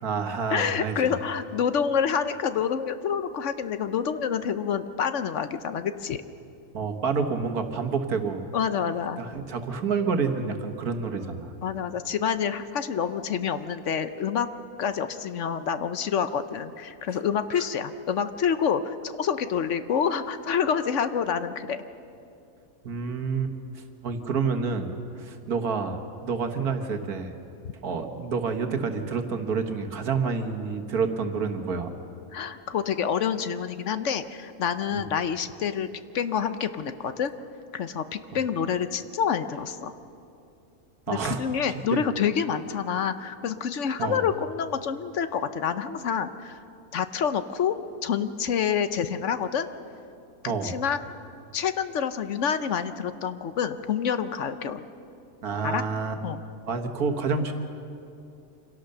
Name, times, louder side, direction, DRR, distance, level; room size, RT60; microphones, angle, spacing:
voice 1, 0.0-1.1 6.7-8.5 9.2-11.5 17.6-17.7 22.8-27.3 27.8-31.9 34.9-35.0 41.1-41.4 41.7-42.0 44.0-44.2 50.5-50.7 55.4-56.2 56.7-57.5, right 5 dB, 90° right, 6 dB, 1.9 m, -29 dB
voice 2, 0.5-6.2 8.5-9.2 11.6-14.5 14.8-21.8 32.3-35.9 36.1-37.3 37.7-39.9 41.1-46.6 46.9-47.8 48.0-49.7 50.4-51.0 51.5-54.8 55.6-55.8 56.2-56.4, left 7 dB, 60° left, 11 dB, 1.0 m, -27 dB
sound 1, 10.1-11.3 13.9-15.3 19.5-20.9 25.5-26.9, right 4 dB, 20° right, 3.4 m, -49 dB
25.5 x 17.0 x 6.7 m, 2.6 s
omnidirectional pair, 1.5 m